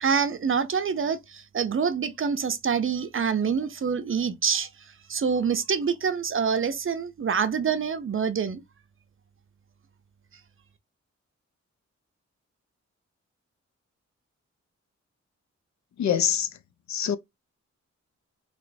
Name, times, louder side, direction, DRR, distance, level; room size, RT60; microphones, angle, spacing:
voice 1, 0.0-4.7 5.1-8.6, right 6 dB, 45° right, 0.6 m, -26 dB
voice 2, 16.0-16.5 16.9-17.2, left 9 dB, 70° left, 0.5 m, -24 dB
3.0 x 3.0 x 2.6 m
cardioid pair, 65°, 30 cm